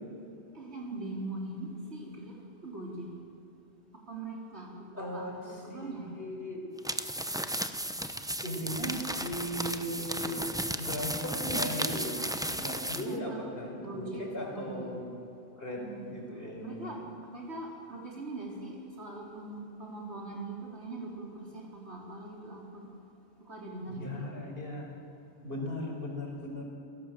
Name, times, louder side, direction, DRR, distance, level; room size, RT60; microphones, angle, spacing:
voice 1, 0.5-3.1 3.9-6.2 13.0-14.9 15.8-16.1 16.6-17.0 17.3-22.9 23.4-24.3, right 2 dB, 80° right, -2 dB, 4.4 m, -42 dB
voice 2, 4.9-5.9 6.2-6.6 8.4-10.4 10.8-12.2 12.6-15.2 15.6-16.9 23.9-24.9 25.4-26.6, equal, 60° left, 0 dB, 5.3 m, -37 dB
sound 1, 6.8-13.1, right 1 dB, 5° right, 0.7 m, -34 dB
28.5 x 17.5 x 7.7 m, 2.8 s
omnidirectional pair, 1.1 m